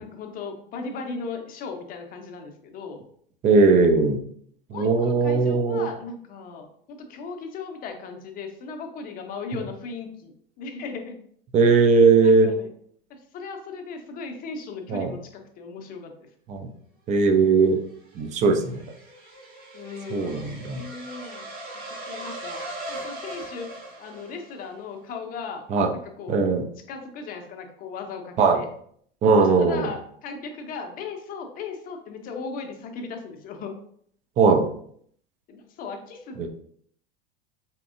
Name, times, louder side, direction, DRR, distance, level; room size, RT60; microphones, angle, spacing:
voice 1, 0.0-3.0 4.7-11.2 12.2-12.7 13.1-16.3 19.7-23.7 24.0-25.6 26.2-26.4 26.9-28.7 29.4-33.7 35.5-36.5, left 4 dB, 30° left, 4 dB, 0.7 m, -37 dB
voice 2, 3.4-4.2 4.7-5.9 11.5-12.5 14.9-15.1 16.5-16.7 17.1-17.8 18.2-18.8 20.1-20.8 25.7-25.9 26.3-26.6 28.4-28.6 29.2-29.9 34.4-34.6 36.4-36.5, right 4 dB, 25° right, 6 dB, 0.5 m, -19 dB
sound 1, 17.7-24.8, right 1 dB, 55° right, 1.3 m, -39 dB
4.3 x 3.3 x 2.5 m, 0.63 s
figure-of-eight pair, 80°, 30 cm